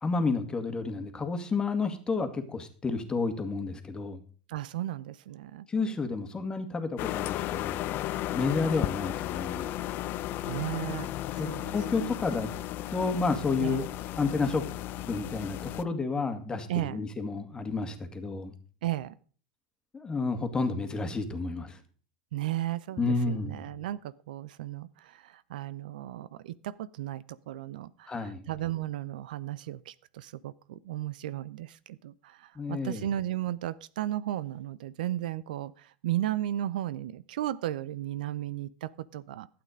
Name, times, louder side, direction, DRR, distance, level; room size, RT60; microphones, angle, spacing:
voice 1, 0.0-4.2 5.7-7.8 8.3-9.7 11.4-12.5 12.9-13.8 14.2-14.6 15.1-18.5 19.9-21.8 23.0-23.6 28.1-28.4 32.6-33.1, left 4 dB, 15° left, 6 dB, 2.0 m, -30 dB
voice 2, 4.5-5.7 10.4-11.1 11.4-11.7 13.6-13.8 16.7-17.0 18.8-19.1 22.3-39.5, right 13 dB, 75° right, 18 dB, 0.5 m, -35 dB
sound 1, 7.0-15.8, left 13 dB, 45° left, 0.6 m, -34 dB
12.0 x 8.7 x 5.1 m, 0.42 s
hypercardioid pair, 95°, 5 cm